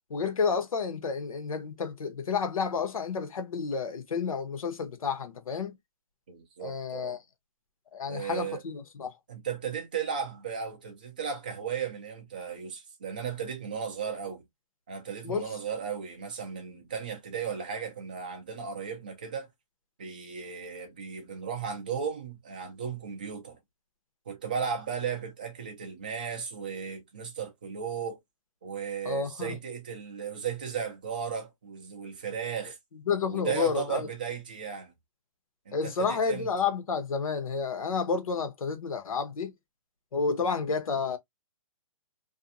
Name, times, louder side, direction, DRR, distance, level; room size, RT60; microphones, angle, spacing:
voice 1, 0.1-5.8 6.6-7.2 7.9-9.1 15.2-15.5 29.0-29.6 33.1-34.1 35.7-39.5 40.1-41.2, left 5 dB, 75° left, 0.9 m, -30 dB
voice 2, 6.3-7.2 8.1-8.6 9.3-14.4 14.9-19.5 20.0-23.6 24.3-28.2 28.6-32.8 33.3-34.9 35.7-36.5, right 7 dB, 15° right, 0.4 m, -35 dB
2.6 x 2.1 x 2.6 m
hypercardioid pair, 175°, 18 cm